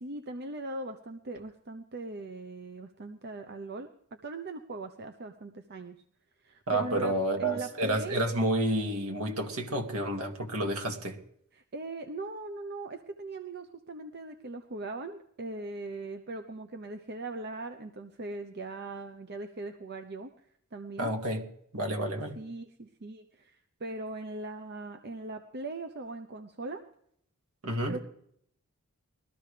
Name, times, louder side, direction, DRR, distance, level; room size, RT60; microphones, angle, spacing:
voice 1, 0.0-3.9 4.2-6.0 6.4-8.2 11.5-20.3 20.7-21.1 22.4-26.8 27.9-28.1, right 2 dB, 45° right, 7 dB, 0.8 m, -40 dB
voice 2, 6.7-11.2 21.0-21.4 21.7-22.4 27.6-28.0, right 1 dB, 70° right, 3 dB, 2.3 m, -30 dB
21.0 x 13.5 x 3.3 m, 0.68 s
head